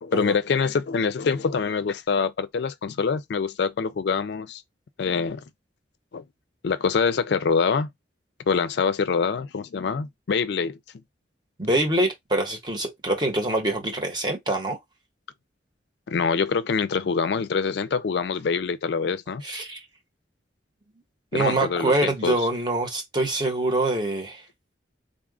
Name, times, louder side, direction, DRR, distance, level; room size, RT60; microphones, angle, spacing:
voice 1, 0.0-4.6 5.0-5.4 6.1-6.2 6.6-7.9 8.5-10.8 16.1-19.4 21.3-22.4, left 5 dB, 60° left, 0.4 m, -25 dB
voice 2, 11.6-14.8 19.4-19.8 21.3-24.4, right 1 dB, 25° right, 1.2 m, -25 dB
3.8 x 2.4 x 3.5 m
head